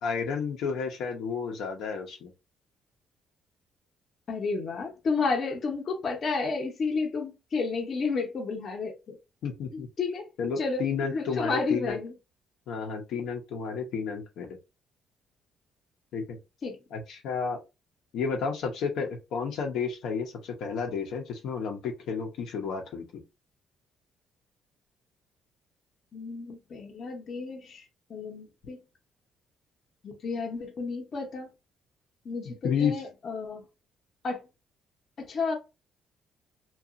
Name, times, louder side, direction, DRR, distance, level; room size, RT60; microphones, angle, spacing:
voice 1, 0.0-2.3 9.4-9.9 10.4-12.0 12.7-14.6 16.1-16.4 16.9-17.6 18.1-23.0 32.4-33.0, left 6 dB, 75° left, 0.7 m, -31 dB
voice 2, 4.3-9.2 9.7-10.3 10.6-10.8 11.1-12.1 16.6-16.8 26.1-28.8 30.0-31.5 32.2-33.6 34.2-34.4 35.3-35.6, left 4 dB, 40° left, 0.7 m, -31 dB
2.7 x 2.3 x 2.4 m
cardioid pair, 145°, 0 cm